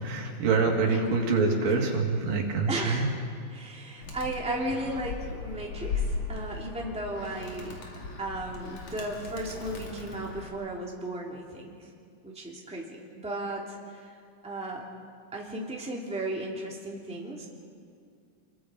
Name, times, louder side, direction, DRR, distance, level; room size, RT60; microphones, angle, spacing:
voice 1, 0.0-3.1, right 4 dB, 85° right, 1 dB, 4.2 m, -25 dB
voice 2, 2.7-3.1 3.5-7.8 8.2-11.9 12.2-14.2 14.4-14.9 15.3-17.5, right 1 dB, ahead, -2 dB, 2.3 m, -35 dB
Animal, 4.0-10.5, left 4 dB, 55° left, 3.4 m, -37 dB
29.0 x 22.0 x 5.1 m, 2.3 s
omnidirectional pair, 3.9 m